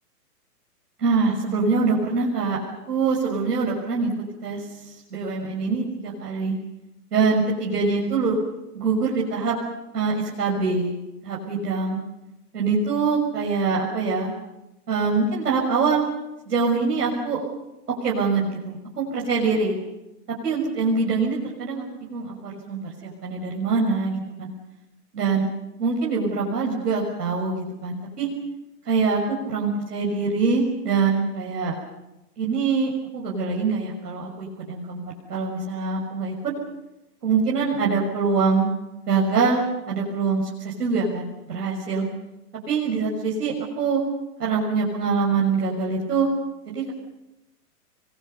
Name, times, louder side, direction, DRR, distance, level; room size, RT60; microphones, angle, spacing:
voice 1, 1.0-2.6 2.9-4.1 4.4-6.5 7.1-8.4 8.7-9.5 9.9-10.9 11.2-12.0 12.5-14.3 14.9-16.0 16.5-17.4 18.0-19.7 20.4-24.5 25.1-25.5 25.8-28.3 28.9-31.7 32.4-35.0 35.3-36.5 37.2-38.7 39.1-42.1 42.7-44.0 44.4-46.3 46.7-46.9, right 4 dB, 75° right, -2 dB, 6.5 m, -24 dB
29.0 x 23.0 x 6.8 m, 0.95 s
hypercardioid pair, 180°, 47 cm